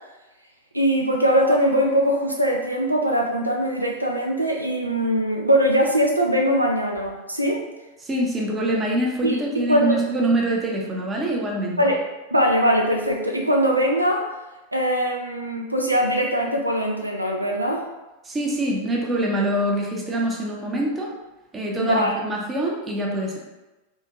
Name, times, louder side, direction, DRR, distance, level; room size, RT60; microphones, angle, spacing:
voice 1, 0.7-7.6 9.2-9.4 9.7-9.9 11.8-12.0 12.3-14.3 14.7-17.9 21.8-22.2, equal, 85° right, 0 dB, 0.3 m, -21 dB
voice 2, 8.0-11.8 18.2-21.1 21.5-23.4, right 1 dB, 20° right, -1 dB, 0.6 m, -24 dB
2.7 x 2.5 x 2.4 m, 1.1 s
figure-of-eight pair, 90°, 0 cm